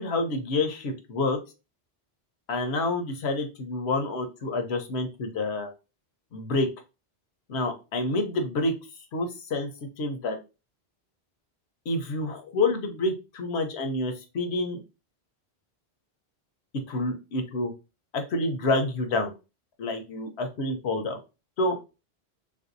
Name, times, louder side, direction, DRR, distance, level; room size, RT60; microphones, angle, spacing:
voice 1, 0.0-1.4 2.5-5.7 6.3-6.7 7.5-8.7 9.1-9.7 10.0-10.4 11.9-14.8 16.9-17.7 18.1-19.3 19.8-21.2 21.6-21.8, left 2 dB, 80° left, 5 dB, 1.0 m, -28 dB
3.5 x 2.6 x 2.5 m, 0.29 s
omnidirectional pair, 1.1 m